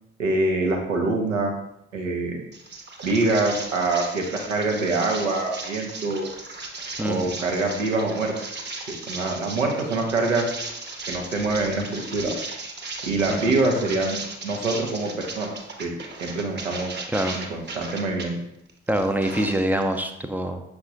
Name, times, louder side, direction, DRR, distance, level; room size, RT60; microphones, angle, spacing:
voice 1, 0.2-1.5 1.9-2.4 3.0-6.3 7.0-8.3 8.9-10.5 11.1-12.3 13.0-15.9 16.2-16.9 17.3-18.3, right 2 dB, 85° right, 1 dB, 0.6 m, -25 dB
sound 1, 2.5-18.3 18.7-20.0, right 3 dB, 30° right, 0.8 m, -37 dB
voice 2, 7.0-7.3 13.3-13.6 17.1-17.4 18.9-20.6, right 1 dB, 5° right, 6 dB, 0.4 m, -25 dB
6.2 x 2.3 x 3.7 m, 0.82 s
figure-of-eight pair, 40°, 37 cm